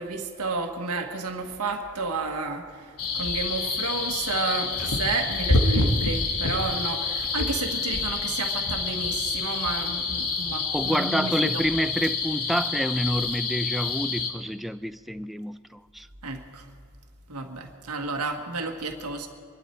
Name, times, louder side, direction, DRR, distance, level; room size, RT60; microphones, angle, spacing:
voice 1, 0.0-11.6 16.2-16.6 17.3-19.3, right 3 dB, 85° right, 1.7 m, -31 dB
sound 1, 3.0-14.3, left 3 dB, 80° left, 1.5 m, -27 dB
voice 2, 10.7-16.1, equal, ahead, 0.3 m, -28 dB
24.5 x 12.0 x 4.5 m
head